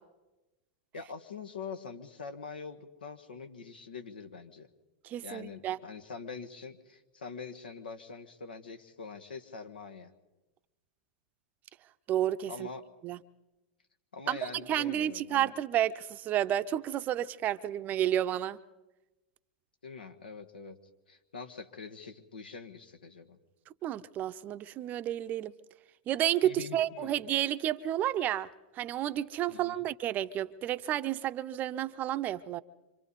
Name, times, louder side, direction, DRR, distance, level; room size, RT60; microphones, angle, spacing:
voice 1, 0.9-4.7 5.2-10.1 12.5-12.8 14.1-15.5 19.8-20.8 21.1-23.4 26.4-27.1 29.5-29.8, left 5 dB, 80° left, 1.5 m, -44 dB
voice 2, 5.0-5.8 12.1-12.7 13.0-13.2 14.3-14.4 14.7-18.6 23.8-25.5 26.1-28.5 28.8-32.6, right 12 dB, 35° right, 0.7 m, -31 dB
26.5 x 25.5 x 4.2 m
hypercardioid pair, 100°, 5 cm